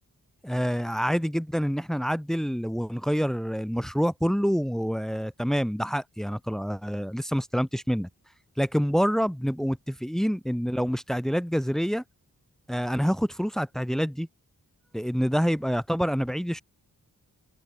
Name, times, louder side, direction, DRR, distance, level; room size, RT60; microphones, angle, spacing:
voice 1, 0.4-8.1 8.6-12.0 12.7-14.3 14.9-16.6, equal, ahead, 3.2 m, -27 dB
wide cardioid pair, 125°, 35 cm